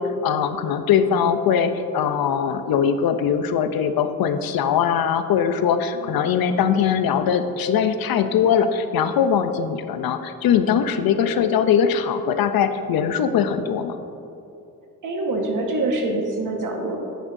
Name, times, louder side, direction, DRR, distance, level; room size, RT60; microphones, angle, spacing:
voice 1, 0.0-14.0, left 7 dB, 80° left, 9 dB, 0.7 m, -21 dB
voice 2, 15.0-17.0, right 2 dB, 60° right, 2 dB, 1.4 m, -25 dB
9.9 x 8.9 x 2.6 m, 2.7 s
cardioid pair, 90°, 35 cm